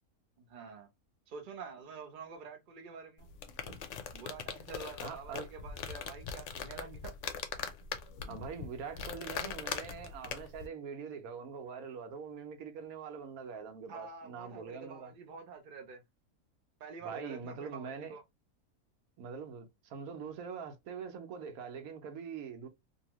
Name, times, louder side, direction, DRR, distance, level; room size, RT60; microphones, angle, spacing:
voice 1, 0.4-0.9 1.3-3.3 4.1-7.1 13.9-16.0 16.8-18.2, right 5 dB, 45° right, 0.8 m, -47 dB
sound 1, 3.2-10.7, left 7 dB, 65° left, 0.8 m, -41 dB
voice 2, 5.0-5.5 8.2-15.1 17.0-18.1 19.2-22.7, right 6 dB, 75° right, 1.1 m, -43 dB
2.7 x 2.7 x 2.9 m
omnidirectional pair, 1.6 m